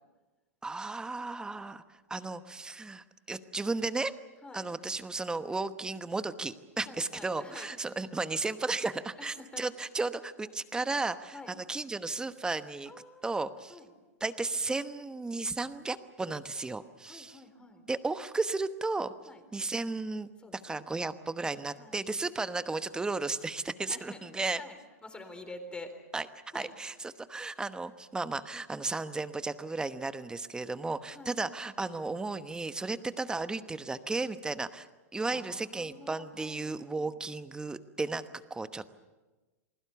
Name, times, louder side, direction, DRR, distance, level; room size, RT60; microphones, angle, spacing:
voice 1, 0.6-1.8 2.1-4.1 4.5-12.9 13.2-13.8 14.2-17.4 17.9-19.1 19.5-24.6 26.1-26.3 26.5-34.9 35.1-38.2 38.5-38.9, right 3 dB, 10° right, 12 dB, 1.0 m, -34 dB
voice 2, 6.9-7.7 9.2-9.6 11.3-11.5 12.9-13.4 13.7-13.9 17.0-17.8 19.3-19.4 20.4-20.8 21.8-22.0 23.9-25.9 26.5-26.7 31.1-31.3 35.3-37.2, left 2 dB, 10° left, 7 dB, 3.9 m, -48 dB
29.0 x 20.5 x 7.0 m, 1.2 s
hypercardioid pair, 125°, 9 cm